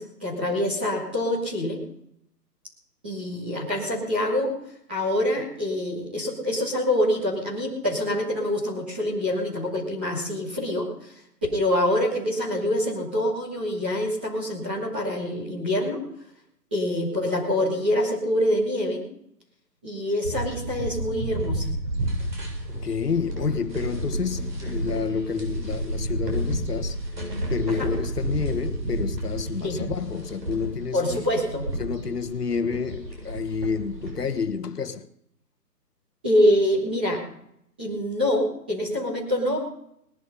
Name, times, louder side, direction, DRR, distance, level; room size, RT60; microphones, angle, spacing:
voice 1, 0.0-1.8 3.0-4.5 4.9-11.2 11.5-16.0 16.7-19.0 19.8-21.7 27.7-27.9 29.6-29.8 30.9-31.6 36.2-37.2 37.8-39.6, left 1 dB, 5° right, 1.6 m, -25 dB
sound 1, 20.2-34.4, right 1 dB, 75° right, 7.4 m, -31 dB
voice 2, 22.7-27.0 27.5-31.2 31.8-35.1, left 6 dB, 70° left, 1.3 m, -29 dB
19.5 x 12.0 x 5.5 m
hypercardioid pair, 175°, 50 cm